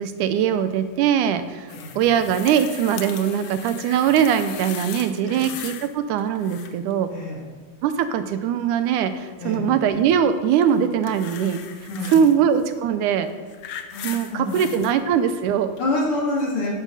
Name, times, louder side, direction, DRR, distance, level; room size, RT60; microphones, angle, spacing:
voice 1, 0.0-7.1 7.8-11.6 12.1-13.3 14.0-15.7, right 8 dB, 85° right, 10 dB, 2.3 m, -21 dB
sound 1, 1.7-5.9 6.2-6.9 10.6-12.4 13.2-14.9 15.8-15.9, left 9 dB, 70° left, 1.3 m, -38 dB
voice 2, 7.1-7.4 9.4-9.6 11.9-12.2 13.9-14.6 15.8-16.7, left 2 dB, 45° left, -4 dB, 3.8 m, -27 dB
12.5 x 11.0 x 4.9 m, 1.5 s
omnidirectional pair, 3.5 m